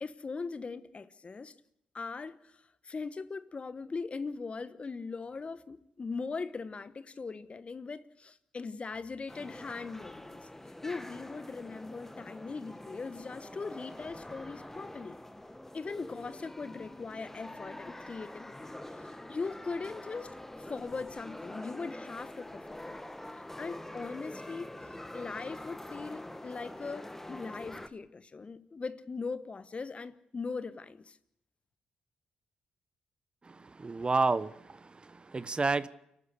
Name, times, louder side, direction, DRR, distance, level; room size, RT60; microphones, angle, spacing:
voice 1, 0.0-1.5 1.9-10.5 10.8-15.2 15.7-23.0 23.6-31.2, left 4 dB, 40° left, 1.2 m, -40 dB
sound 1, 9.3-27.9, left 1 dB, 10° left, 1.5 m, -45 dB
voice 2, 33.5-35.9, right 3 dB, 30° right, 1.1 m, -31 dB
29.0 x 12.5 x 8.3 m
supercardioid pair, 50°, 3 cm